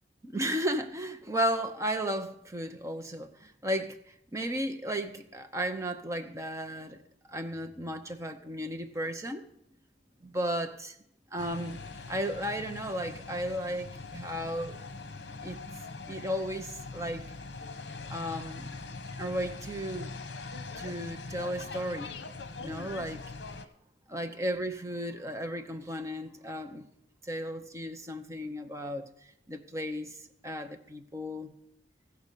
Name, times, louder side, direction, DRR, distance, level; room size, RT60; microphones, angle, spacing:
voice 1, 0.2-4.0 4.3-7.0 7.3-9.4 10.3-11.0 11.3-11.8 12.1-14.8 15.4-15.6 16.1-17.3 18.1-18.7 19.2-20.1 20.8-22.2 22.6-23.2 24.1-26.9 27.3-29.1 29.5-30.2 30.4-31.5, equal, 15° right, 0.9 m, -34 dB
sound 1, 11.4-23.7, left 3 dB, 75° left, 0.9 m, -42 dB
15.0 x 5.5 x 8.2 m
head